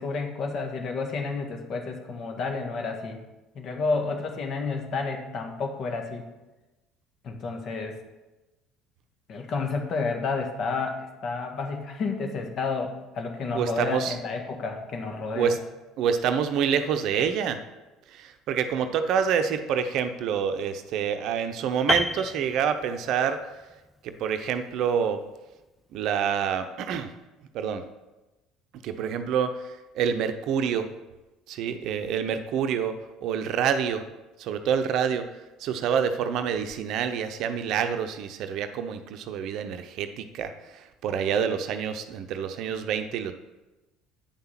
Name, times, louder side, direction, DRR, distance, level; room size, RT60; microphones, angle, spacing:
voice 1, 0.0-3.2 3.6-6.3 7.2-7.9 9.3-15.6, left 4 dB, 50° left, 3 dB, 1.7 m, -30 dB
voice 2, 13.5-14.2 15.3-15.6 16.0-17.6 18.1-23.4 24.0-25.2 25.9-27.1 27.5-27.8 28.8-30.9 31.5-34.0 34.4-35.3 35.6-43.3, right 7 dB, 60° right, 9 dB, 0.7 m, -27 dB
Piano, 21.9-23.3 23.6-23.8, left 1 dB, 10° left, 0.5 m, -29 dB
8.8 x 5.7 x 5.8 m, 1.1 s
hypercardioid pair, 65°, 0 cm